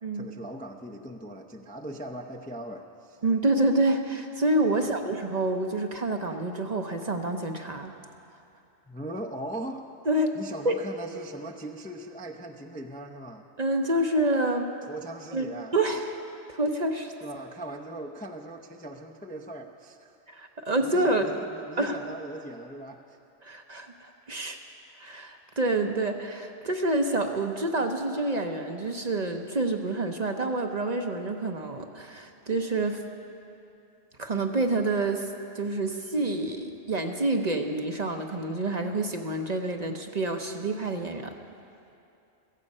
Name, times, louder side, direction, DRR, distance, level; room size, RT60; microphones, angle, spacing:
voice 1, 0.1-3.2 4.7-5.0 8.9-9.9 10.3-13.4 14.8-15.7 17.2-20.2 20.8-23.2, right 1 dB, 10° left, 2 dB, 0.5 m, -39 dB
voice 2, 3.2-7.9 10.1-10.4 10.6-10.7 13.6-14.7 15.3-15.5 15.7-16.2 16.5-17.1 20.3-21.3 21.8-22.0 23.4-24.6 25.0-33.0 34.2-41.3, right 2 dB, 40° right, 5 dB, 0.8 m, -27 dB
16.0 x 15.0 x 5.4 m, 2.7 s
omnidirectional pair, 1.2 m